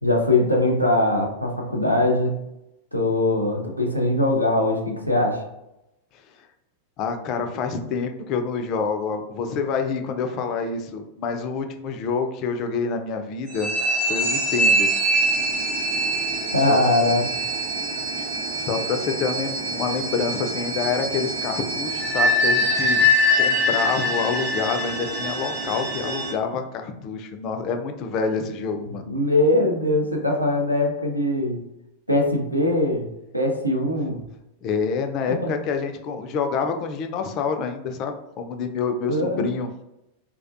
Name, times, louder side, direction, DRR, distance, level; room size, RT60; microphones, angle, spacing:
voice 1, 0.0-2.4 2.9-5.5 16.5-17.3 29.1-31.6 32.1-33.1 33.3-34.2 35.3-35.5 39.1-39.5, left 1 dB, 90° right, 0 dB, 0.5 m, -21 dB
voice 2, 7.0-13.7 14.0-14.9 16.6-16.8 18.2-18.3 18.6-23.1 23.4-29.0 34.6-39.7, left 5 dB, 40° left, 6 dB, 0.3 m, -27 dB
sound 1, 13.5-26.3, equal, 50° right, 0.7 m, -24 dB
2.3 x 2.1 x 2.5 m, 0.88 s
figure-of-eight pair, 90°, 0 cm